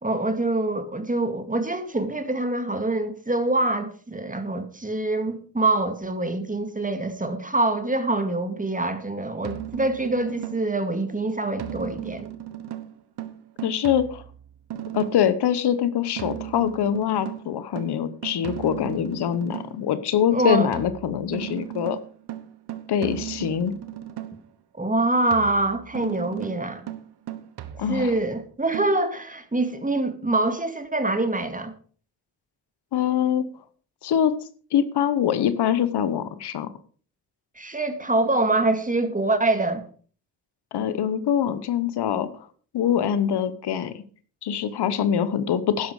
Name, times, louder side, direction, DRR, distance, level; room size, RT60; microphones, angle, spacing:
voice 1, 0.0-12.3 20.3-20.7 24.8-26.9 27.9-31.7 37.6-39.9, right 2 dB, 20° right, 2.1 m, -25 dB
sound 1, 9.4-10.8 11.6-15.4 16.2-19.8 20.7-24.5 25.3-28.3 28.7-28.9, right 12 dB, 85° right, 1.2 m, -36 dB
voice 2, 13.6-14.2 14.9-22.0 22.9-23.7 27.8-28.1 32.9-33.5 34.0-34.4 34.7-36.7 40.7-42.5 42.7-44.0 44.4-45.9, left 9 dB, 90° left, 1.2 m, -24 dB
12.0 x 10.5 x 4.9 m
cardioid pair, 70°, 39 cm